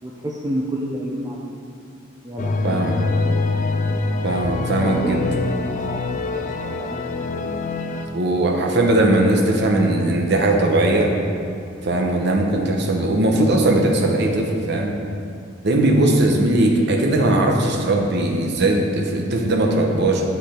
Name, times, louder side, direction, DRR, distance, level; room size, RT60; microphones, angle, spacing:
voice 1, 0.0-1.6 2.2-3.2 4.6-7.0 7.3-7.5, equal, 20° right, -3 dB, 0.5 m, -30 dB
sound 1, 2.4-8.1, left 3 dB, 40° left, 0.4 m, -24 dB
voice 2, 2.6-3.0 4.2-5.3 8.1-11.1 11.8-14.9 15.6-20.2, right 1 dB, 60° right, 1 dB, 0.9 m, -19 dB
8.1 x 5.3 x 4.4 m, 2.6 s
head